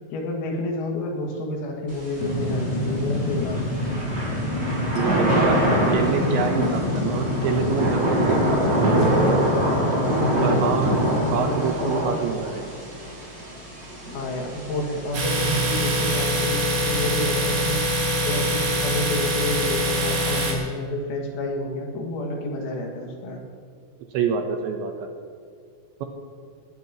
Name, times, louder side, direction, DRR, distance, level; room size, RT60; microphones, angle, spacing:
voice 1, 0.1-4.0 11.2-12.2 14.1-18.0 18.2-23.4, left 1 dB, 80° left, 0 dB, 4.9 m, -29 dB
Thunder / Rain, 1.9-20.1, right 1 dB, 15° right, 5.3 m, -27 dB
sound 1, 2.2-11.4, left 2 dB, 35° left, 2.3 m, -26 dB
voice 2, 4.9-5.6 5.9-9.6 10.4-12.7 24.1-25.1, right 6 dB, 75° right, 4 dB, 2.9 m, -27 dB
Domestic sounds home sounds, 15.1-20.5, equal, 45° right, 4.5 m, -24 dB
20.5 x 19.0 x 3.1 m, 2.2 s
omnidirectional pair, 6.0 m